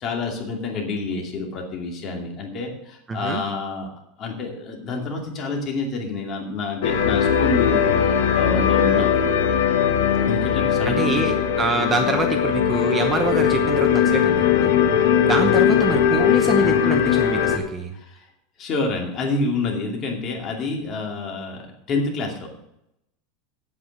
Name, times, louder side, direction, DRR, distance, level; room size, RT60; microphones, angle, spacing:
voice 1, 0.0-3.9 4.2-9.1 10.3-11.3 15.0-15.1 17.9-18.3 18.6-22.5, left 3 dB, 30° left, 1 dB, 2.5 m, -28 dB
voice 2, 3.1-3.4 10.9-14.8 15.2-17.9, right 4 dB, 15° right, 6 dB, 0.8 m, -26 dB
sound 1, 6.8-17.6, left 8 dB, 80° left, 1.4 m, -19 dB
8.7 x 7.9 x 8.0 m, 0.82 s
supercardioid pair, 160°, 0 cm